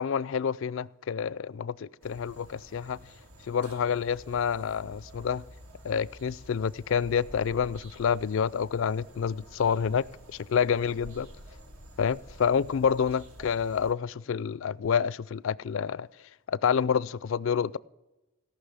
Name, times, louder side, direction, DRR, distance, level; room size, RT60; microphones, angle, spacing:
voice 1, 0.0-3.0 3.5-5.4 5.8-10.1 10.5-11.3 12.0-16.1 16.5-17.8, left 7 dB, 60° left, 0.4 m, -28 dB
sound 1, 2.0-13.9, equal, 70° right, 2.1 m, -50 dB
17.5 x 5.9 x 8.2 m
head